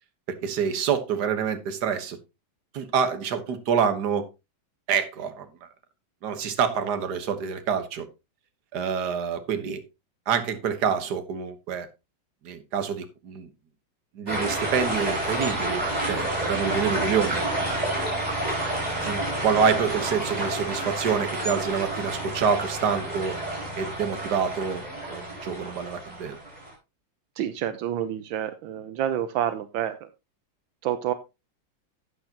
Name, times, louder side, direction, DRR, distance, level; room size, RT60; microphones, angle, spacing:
voice 1, 0.3-2.2 2.7-4.3 4.9-5.5 6.2-8.1 8.7-9.8 10.3-11.9 12.4-13.5 14.2-17.4 19.0-23.4 23.8-24.8 25.1-26.4, right 7 dB, 60° right, 1.7 m, -27 dB
sound 1, 14.3-26.7, right 1 dB, 20° right, 4.9 m, -29 dB
voice 2, 27.4-30.1 30.8-31.1, right 10 dB, 80° right, 1.4 m, -28 dB
11.5 x 8.5 x 2.9 m
omnidirectional pair, 2.1 m